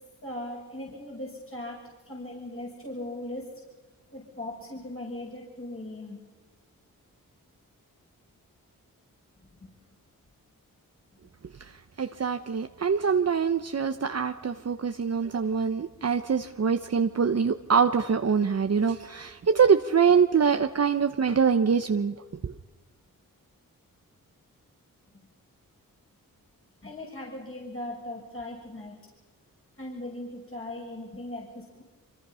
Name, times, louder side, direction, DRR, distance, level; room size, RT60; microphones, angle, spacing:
voice 1, 0.2-1.8 2.1-3.5 4.1-6.2 9.6-9.7 26.8-28.9 29.8-31.8, left 1 dB, 35° left, -2 dB, 6.4 m, -38 dB
voice 2, 12.0-22.1 22.4-22.5, right 6 dB, 45° right, 7 dB, 0.9 m, -24 dB
25.0 x 25.0 x 5.7 m, 1.3 s
cardioid pair, 55°, 35 cm